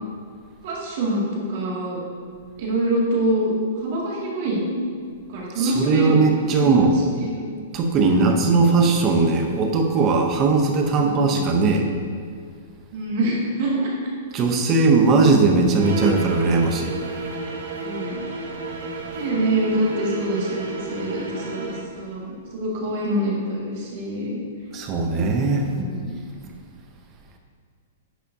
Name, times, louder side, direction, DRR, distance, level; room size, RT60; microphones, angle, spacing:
voice 1, 0.6-2.0 2.6-3.5 3.8-4.7 5.3-6.2 6.6-6.9 7.2-7.5 8.0-8.5 11.0-11.7 12.9-13.9 17.8-18.2 19.1-24.4 25.6-26.1, right 1 dB, 45° right, -4 dB, 2.1 m, -25 dB
voice 2, 5.6-6.9 7.7-11.9 14.3-17.0 24.7-25.7, right 4 dB, 20° right, 4 dB, 0.7 m, -19 dB
sound 1, 15.7-21.9, right 1 dB, 75° right, 1.4 m, -31 dB
10.0 x 7.1 x 2.7 m, 2.1 s
hypercardioid pair, 175°, 0 cm